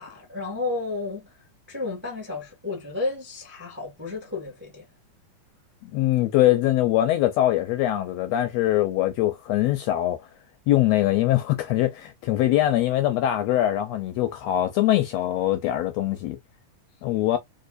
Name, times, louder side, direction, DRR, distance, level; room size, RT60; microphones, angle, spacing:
voice 1, 0.0-1.3 1.7-4.9, left 3 dB, 10° right, 0.7 m, -32 dB
voice 2, 5.8-10.2 10.7-16.4 17.0-17.4, left 14 dB, 80° left, 1.5 m, -22 dB
4.6 x 2.5 x 2.4 m
omnidirectional pair, 3.4 m